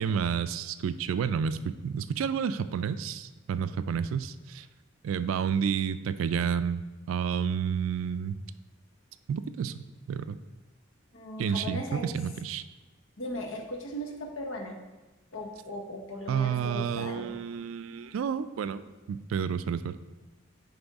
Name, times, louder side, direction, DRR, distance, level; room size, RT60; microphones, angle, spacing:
voice 1, 0.0-4.7 5.0-6.8 7.1-8.4 9.3-9.8 10.1-10.4 11.4-12.6 16.3-18.8 19.1-19.9, right 7 dB, 80° right, 13 dB, 0.3 m, -30 dB
voice 2, 11.1-12.1 13.2-14.8 15.3-17.4, equal, 70° left, 3 dB, 0.9 m, -38 dB
9.3 x 3.5 x 3.5 m, 1.1 s
head